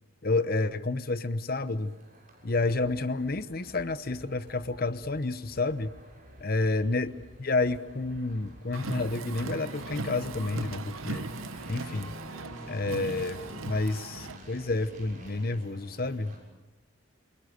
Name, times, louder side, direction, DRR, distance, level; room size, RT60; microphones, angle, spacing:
voice 1, 0.2-2.0 2.4-5.9 6.4-11.3 11.7-12.1 12.7-16.4, left 3 dB, 45° left, 13 dB, 0.9 m, -30 dB
sound 1, 1.0-16.4, right 1 dB, 40° right, 6.8 m, -51 dB
sound 2, 2.5-15.2, equal, 60° right, 5.5 m, -54 dB
Car, 8.7-14.4, right 3 dB, 80° right, 0.9 m, -38 dB
28.5 x 23.0 x 6.7 m, 1.1 s
head